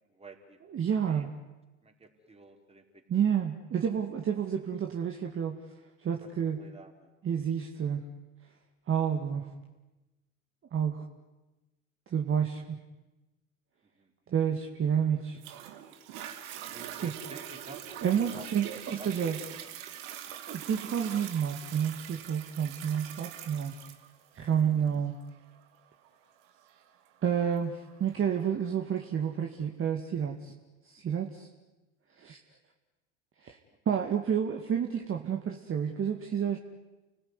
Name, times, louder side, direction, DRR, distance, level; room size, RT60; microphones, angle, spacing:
voice 1, 0.1-0.6 1.1-1.3 1.8-3.2 6.2-6.3 6.6-7.1 14.0-14.1 16.7-18.5 18.8-19.1 24.7-24.9 30.2-30.4 33.9-34.0, right 2 dB, 15° right, 4 dB, 4.9 m, -50 dB
voice 2, 0.7-1.3 3.1-5.6 6.0-6.6 7.2-8.0 8.9-9.5 10.7-11.0 12.1-12.8 14.3-15.4 17.0-17.1 18.0-19.7 20.5-23.7 24.3-25.2 27.2-30.5 30.9-31.5 32.2-32.4 33.4-33.6 33.9-36.6, right 8 dB, 35° right, 3 dB, 2.4 m, -30 dB
Toilet flush, 15.4-28.4 29.0-29.1, right 10 dB, 65° right, 2.8 m, -44 dB
29.5 x 19.5 x 9.9 m, 1.1 s
hypercardioid pair, 80°, 36 cm